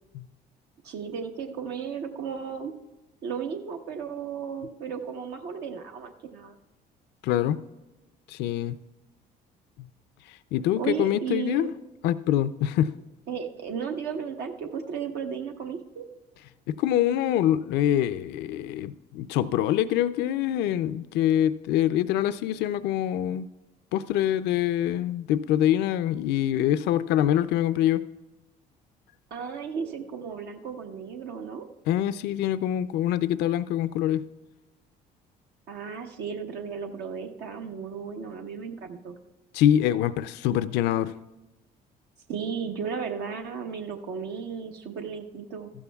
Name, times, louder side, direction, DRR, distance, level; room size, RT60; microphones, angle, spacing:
voice 1, 0.8-2.7 3.2-6.6 10.8-11.7 13.3-16.1 29.3-31.7 35.7-39.2 42.3-45.7, right 6 dB, 75° right, 4 dB, 0.9 m, -34 dB
voice 2, 7.2-7.6 8.3-8.8 10.5-11.7 12.0-12.9 16.7-23.5 23.9-28.0 31.9-34.2 39.5-41.1, left 11 dB, 80° left, 14 dB, 0.4 m, -25 dB
14.5 x 12.5 x 2.3 m, 1.1 s
cardioid pair, 110°, 17 cm